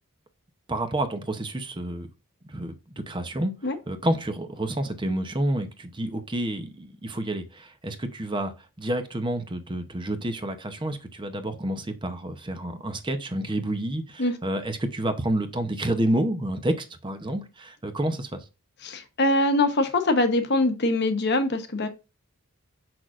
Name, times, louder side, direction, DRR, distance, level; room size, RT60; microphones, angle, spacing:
voice 1, 0.7-2.1 2.5-3.5 3.9-8.5 8.8-18.4, right 1 dB, 20° right, 0.7 m, -29 dB
voice 2, 18.8-21.9, left 2 dB, 50° left, 1.0 m, -23 dB
6.2 x 6.1 x 2.5 m
head